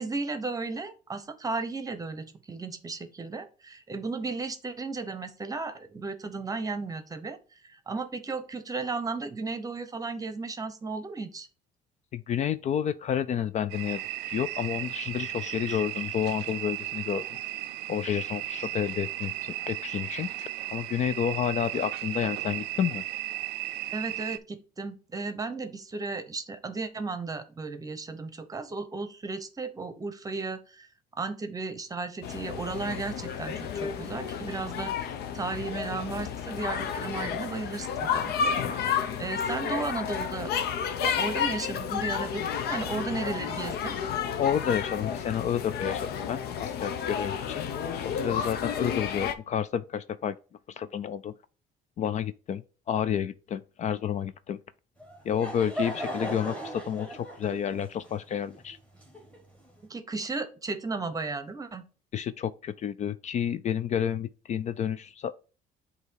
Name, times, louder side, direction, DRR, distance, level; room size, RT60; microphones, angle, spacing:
voice 1, 0.0-7.4 7.6-11.5 23.9-30.9 31.2-40.5 41.0-44.0 59.9-61.8, right 3 dB, 20° right, 0.8 m, -35 dB
voice 2, 12.1-17.2 17.9-23.0 44.4-47.7 48.0-50.4 50.7-51.3 52.0-52.6 52.9-54.6 55.2-58.8 62.1-65.3, left 9 dB, 45° left, 0.4 m, -30 dB
sound 1, 13.7-24.4, right 16 dB, 85° right, 0.4 m, -35 dB
sound 2, 32.2-49.3, left 7 dB, 70° left, 0.7 m, -31 dB
Laughter / Crowd, 55.0-59.7, equal, 5° left, 1.7 m, -37 dB
7.9 x 2.8 x 4.5 m
cardioid pair, 110°, 17 cm